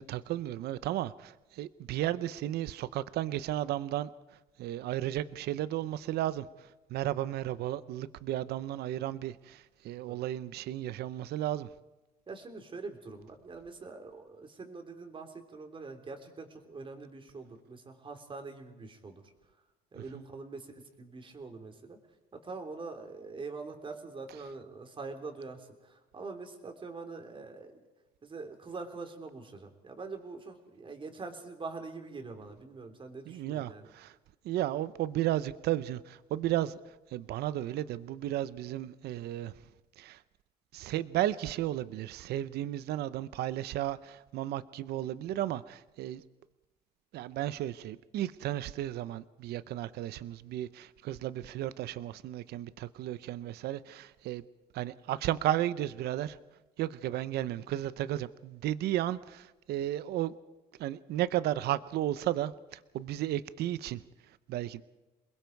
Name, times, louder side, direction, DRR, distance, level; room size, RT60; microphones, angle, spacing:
voice 1, 0.0-4.1 4.6-11.7 20.0-20.2 33.3-34.1 34.4-36.8 37.1-39.5 40.0-40.2 40.7-46.2 47.1-54.4 54.7-56.4 56.8-60.3 60.8-64.0 64.5-64.8, right 13 dB, 75° right, 0.8 m, -34 dB
voice 2, 12.3-19.2 19.9-22.0 22.4-27.8 28.2-33.9, right 3 dB, 30° right, 3.4 m, -44 dB
28.0 x 21.0 x 4.7 m
cardioid pair, 110°, 17 cm